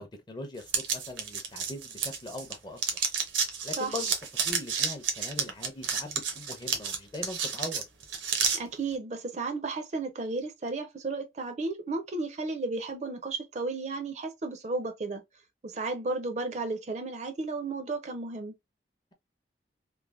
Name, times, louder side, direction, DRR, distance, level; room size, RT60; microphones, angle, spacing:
voice 1, 0.0-3.0 3.6-7.8, left 2 dB, 25° left, 0.5 m, -41 dB
sound 1, 0.7-2.5 2.8-8.6, right 6 dB, 85° right, 0.7 m, -30 dB
voice 2, 8.6-15.2 15.6-18.5, right 3 dB, 35° right, 0.4 m, -33 dB
3.1 x 2.0 x 2.3 m
head